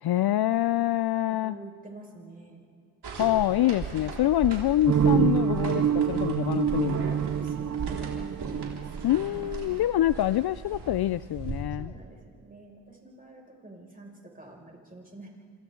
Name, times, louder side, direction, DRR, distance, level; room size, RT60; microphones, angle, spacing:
voice 1, 0.0-1.6 3.1-7.1 9.0-11.9, left 14 dB, 50° left, 15 dB, 0.5 m, -26 dB
voice 2, 1.2-2.6 7.4-8.9 9.2-9.9 11.8-15.3, right 2 dB, 15° right, -1 dB, 6.0 m, -48 dB
sound 1, 3.0-11.6, right 4 dB, 55° right, 4.9 m, -38 dB
sound 2, 4.9-9.6, right 8 dB, 35° right, 0.7 m, -26 dB
28.5 x 27.0 x 3.8 m, 2.2 s
cardioid pair, 70°, 48 cm